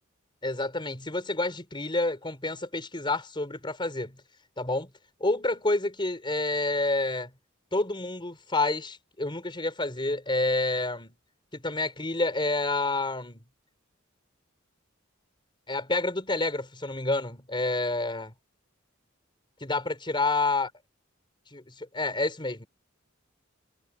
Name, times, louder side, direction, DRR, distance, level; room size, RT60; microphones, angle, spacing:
voice 1, 0.4-4.2 4.6-4.9 5.2-7.3 7.7-11.2 11.5-13.5 15.7-18.3 19.6-20.7 21.5-22.7, left 2 dB, 25° left, 4.5 m, -29 dB
head